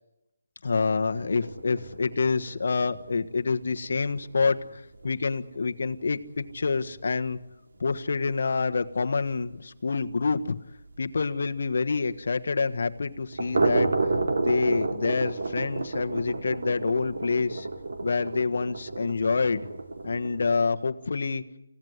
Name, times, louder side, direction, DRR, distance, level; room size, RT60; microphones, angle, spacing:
voice 1, 0.6-7.4 7.8-10.6 11.0-13.9 14.4-17.7 18.0-19.7 20.0-21.4, left 4 dB, 60° left, 9 dB, 1.4 m, -27 dB
sound 1, 1.1-7.0 7.3-7.4 7.8-7.9 8.3-8.4 8.7-8.8 11.6-11.7 13.2-20.6, right 3 dB, 65° right, 3.0 m, -31 dB
28.0 x 16.5 x 9.6 m, 0.92 s
hypercardioid pair, 170°, 0 cm